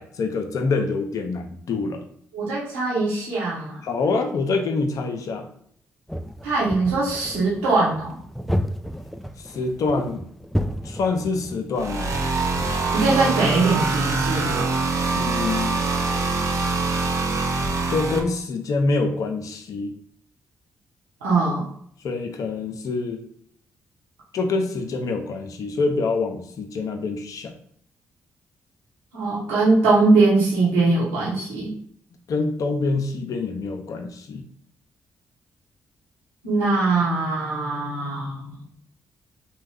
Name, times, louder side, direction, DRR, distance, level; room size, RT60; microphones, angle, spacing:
voice 1, 0.0-2.0 3.8-5.5 9.4-10.3 10.8-12.2 15.1-15.9 17.9-19.9 22.0-23.3 24.3-27.5 32.3-34.5, left 3 dB, 60° left, 5 dB, 0.5 m, -26 dB
voice 2, 2.3-3.8 6.4-8.2 12.9-14.6 21.2-21.6 29.1-31.7 36.4-38.5, right 3 dB, 90° right, -8 dB, 1.1 m, -21 dB
sound 1, 6.1-11.7, equal, ahead, 0.3 m, -31 dB
sound 2, 11.8-18.2, right 3 dB, 50° right, 0.6 m, -24 dB
3.0 x 2.2 x 3.4 m, 0.65 s
hypercardioid pair, 40°, 7 cm